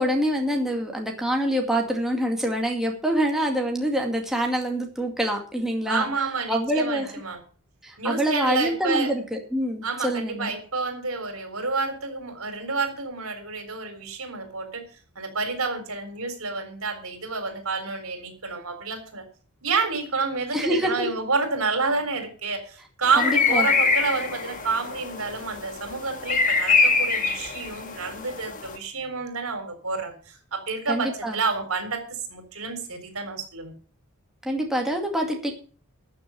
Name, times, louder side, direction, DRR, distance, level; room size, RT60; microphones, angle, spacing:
voice 1, 0.0-6.1 6.5-7.1 7.8-10.5 20.5-21.1 23.2-23.7 30.9-31.4 34.4-35.5, equal, ahead, 1 dB, 2.2 m, -25 dB
voice 2, 5.9-7.4 8.0-9.1 9.8-14.9 15.2-19.2 19.6-33.7, right 4 dB, 75° right, 7 dB, 4.0 m, -29 dB
sound 1, 23.0-28.8, left 4 dB, 35° left, 1.9 m, -24 dB
13.5 x 7.0 x 7.6 m, 0.42 s
head